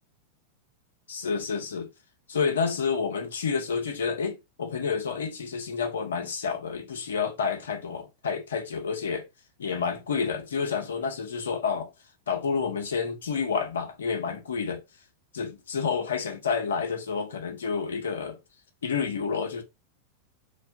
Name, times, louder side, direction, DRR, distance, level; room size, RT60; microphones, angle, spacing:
voice 1, 1.1-1.9 2.3-9.3 9.6-11.9 12.3-14.8 15.3-18.4 18.8-19.6, left 5 dB, 65° left, 0.7 m, -29 dB
3.2 x 2.2 x 2.6 m
figure-of-eight pair, 90°, 0 cm